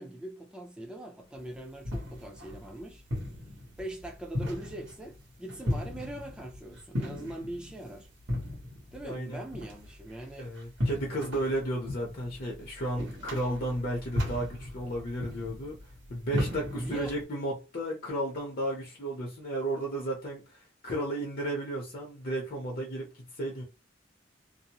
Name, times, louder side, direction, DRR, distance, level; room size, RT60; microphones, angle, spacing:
voice 1, 0.0-3.0 3.8-8.1 8.9-10.5 16.7-17.1, right 1 dB, 5° right, 0.5 m, -41 dB
sound 1, 1.3-17.2, left 1 dB, 75° right, 1.2 m, -37 dB
voice 2, 9.0-9.4 10.4-15.8 16.1-20.4 20.8-23.1 23.4-23.6, right 1 dB, 50° left, 0.8 m, -33 dB
2.7 x 2.0 x 2.9 m
head